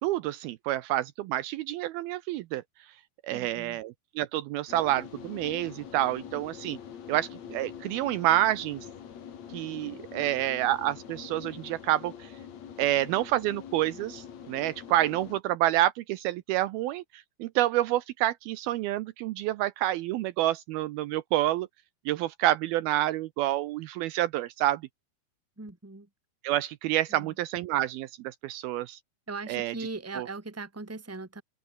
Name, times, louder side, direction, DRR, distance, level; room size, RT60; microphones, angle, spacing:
voice 1, 0.0-2.6 3.2-6.8 7.1-8.9 9.5-12.3 12.8-21.7 22.1-24.8 26.4-29.0 29.5-29.7 30.2-30.3, right 14 dB, 75° right, 2.4 m, -28 dB
voice 2, 3.3-3.8 25.6-26.1 27.1-27.3 29.3-31.4, right 3 dB, 5° right, 2.0 m, -39 dB
sound 1, 4.7-15.4, left 8 dB, 50° left, 2.9 m, -44 dB
open air
omnidirectional pair, 4.7 m